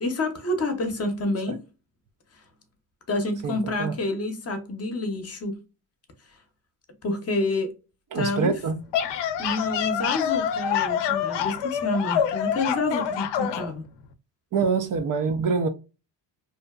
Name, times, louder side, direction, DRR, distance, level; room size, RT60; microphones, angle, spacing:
voice 1, 0.0-1.6 3.1-5.6 7.0-7.7 8.1-8.5 9.4-13.8, left 2 dB, 35° left, 0.7 m, -28 dB
voice 2, 3.4-4.0 8.1-8.8 14.5-15.7, right 5 dB, 45° right, 0.4 m, -25 dB
sound 1, 8.7-13.7, left 8 dB, 70° left, 0.5 m, -26 dB
2.7 x 2.2 x 2.3 m
cardioid pair, 100°, 44 cm